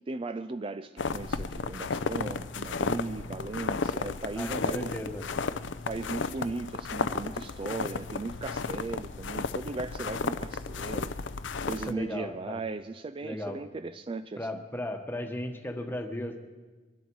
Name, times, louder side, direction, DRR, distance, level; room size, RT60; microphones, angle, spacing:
voice 1, 0.1-5.0 5.9-11.2 11.6-14.6, right 3 dB, 30° right, 10 dB, 0.4 m, -37 dB
sound 1, 1.0-11.9, left 4 dB, 90° left, 0.6 m, -33 dB
voice 2, 4.4-5.2 11.7-12.6 13.2-13.6 14.4-16.4, left 1 dB, 10° left, 5 dB, 1.3 m, -36 dB
23.0 x 12.0 x 4.7 m, 1.3 s
head